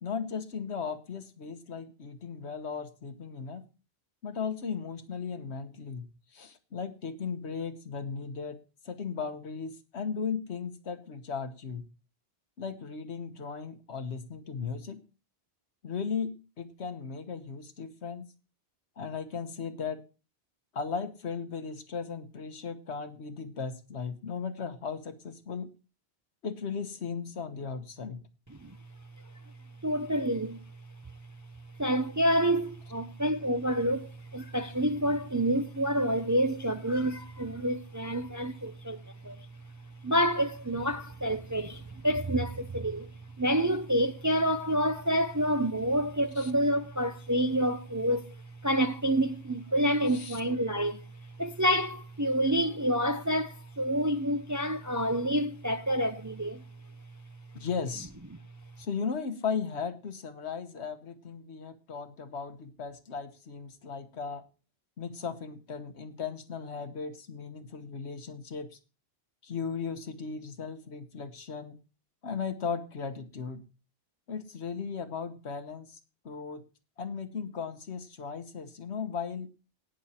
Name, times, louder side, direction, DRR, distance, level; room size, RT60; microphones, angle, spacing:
voice 1, 0.0-3.6 4.2-6.0 6.3-8.6 8.8-11.8 12.6-15.0 15.8-18.3 19.0-20.0 20.7-25.7 26.4-28.2 46.4-46.5 50.1-50.4 57.5-58.1 58.8-64.4 65.0-68.8 69.4-71.8 72.2-73.6 74.3-76.0 76.2-76.6 77.0-79.5, left 6 dB, 75° left, 1.4 m, -36 dB
voice 2, 29.8-30.6 31.8-39.5 40.0-43.1 43.4-56.6, equal, 25° right, 0.4 m, -28 dB
18.0 x 6.4 x 4.3 m
omnidirectional pair, 1.1 m